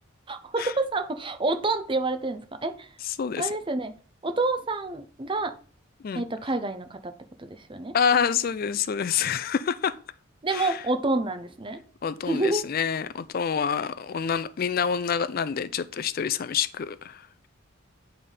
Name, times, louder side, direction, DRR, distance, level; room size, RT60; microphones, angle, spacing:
voice 1, 0.3-2.9 3.4-3.9 4.2-5.5 6.1-7.1 7.4-7.9 10.4-11.8 12.3-12.7, right 2 dB, 25° right, 0.6 m, -28 dB
voice 2, 3.0-3.6 6.0-6.3 7.9-10.0 10.5-10.8 12.0-17.5, left 7 dB, 45° left, 0.3 m, -27 dB
8.6 x 3.5 x 5.4 m
head